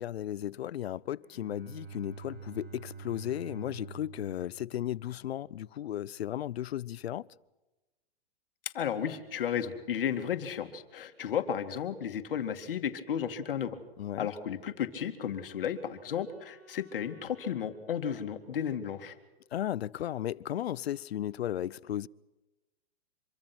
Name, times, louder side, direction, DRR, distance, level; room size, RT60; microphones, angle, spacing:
voice 1, 0.0-7.3 14.0-14.3 19.5-22.1, left 11 dB, 90° left, 0.8 m, -35 dB
Bowed string instrument, 1.2-5.7, right 6 dB, 70° right, 7.7 m, -48 dB
voice 2, 8.7-13.8 14.2-19.1, left 8 dB, 65° left, 2.2 m, -33 dB
Wind instrument woodwind instrument, 14.7-19.7, left 1 dB, 10° right, 5.2 m, -64 dB
26.0 x 23.0 x 6.1 m
hypercardioid pair, 180°, 30 cm